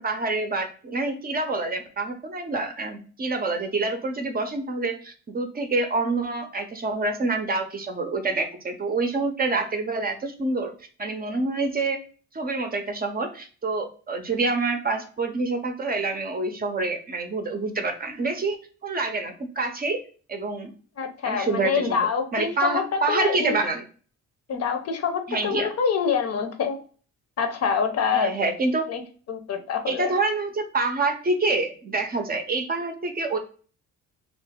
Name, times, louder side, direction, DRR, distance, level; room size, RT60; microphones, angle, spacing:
voice 1, 0.0-10.7 11.0-12.0 12.3-20.0 20.3-20.7 21.2-23.8 25.3-25.7 28.1-28.9 29.9-33.4, right 3 dB, 30° right, 6 dB, 0.6 m, -27 dB
voice 2, 21.0-23.6 24.5-26.8 27.4-28.3 28.9-29.0 29.3-30.1, left 6 dB, 55° left, 5 dB, 0.7 m, -26 dB
2.7 x 2.5 x 3.5 m, 0.40 s
cardioid pair, 90°, 30 cm